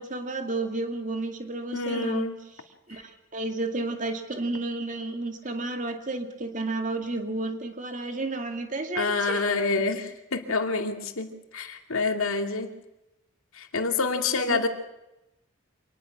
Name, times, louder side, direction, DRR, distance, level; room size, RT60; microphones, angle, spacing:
voice 1, 0.0-2.3 2.9-3.0 3.3-9.4 14.5-14.7, right 2 dB, 35° right, 6 dB, 2.2 m, -31 dB
voice 2, 1.7-2.4 2.9-3.0 9.0-12.7 13.5-14.7, left 3 dB, 80° left, 6 dB, 2.3 m, -27 dB
26.0 x 20.0 x 6.0 m, 0.92 s
head